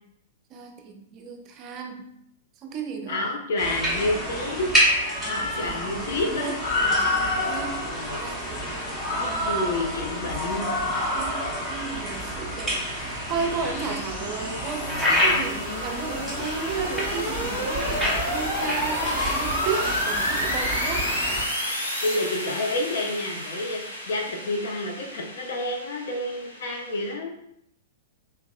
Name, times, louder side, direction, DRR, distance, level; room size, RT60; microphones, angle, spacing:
voice 1, 0.5-2.1 2.6-3.4 5.2-6.6 6.8-7.8 8.2-9.5 10.5-11.4 11.7-14.9 15.2-21.0, right 5 dB, 35° right, 3 dB, 0.5 m, -35 dB
voice 2, 3.1-4.7 5.2-6.6 7.6-8.2 9.2-10.7 22.0-27.3, left 2 dB, 60° left, 0 dB, 0.7 m, -29 dB
sound 1, 3.6-21.4, left 1 dB, 10° left, 1.0 m, -28 dB
sound 2, 11.1-27.1, equal, 90° left, 0.8 m, -31 dB
3.4 x 2.8 x 2.3 m, 0.76 s
figure-of-eight pair, 100°, 0 cm